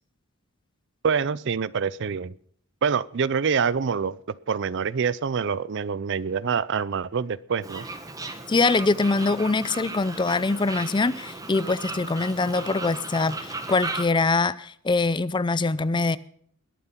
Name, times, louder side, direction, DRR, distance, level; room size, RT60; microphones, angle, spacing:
voice 1, 1.0-2.3 2.8-4.2 4.5-7.8, right 6 dB, 55° right, 0.5 m, -26 dB
Fowl, 7.6-14.1, right 2 dB, 15° right, 1.3 m, -36 dB
voice 2, 8.5-16.2, left 3 dB, 20° left, 0.4 m, -23 dB
21.0 x 7.5 x 5.8 m
head